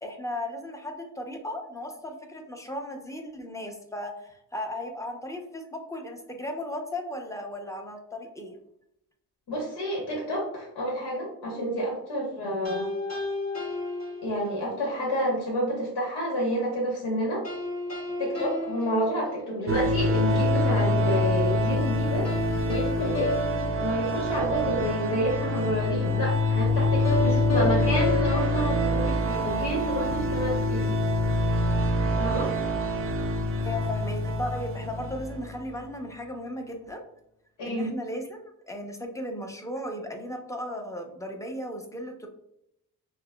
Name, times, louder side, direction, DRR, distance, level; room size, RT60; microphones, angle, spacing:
voice 1, 0.0-8.6 33.6-37.0 37.6-42.3, left 1 dB, 10° left, 3 dB, 0.7 m, -36 dB
voice 2, 9.5-12.9 14.2-17.4 18.2-22.3 22.6-23.4 23.8-30.9 32.2-32.5 37.6-37.9, equal, 75° left, -3 dB, 1.2 m, -29 dB
sound 1, 12.6-14.8 17.4-19.9 22.2-24.8 27.0-29.9, left 2 dB, 40° left, 1.2 m, -32 dB
sound 2, 19.7-35.6, left 1 dB, 35° right, 0.6 m, -26 dB
5.7 x 2.1 x 2.3 m, 0.78 s
cardioid pair, 75°, 39 cm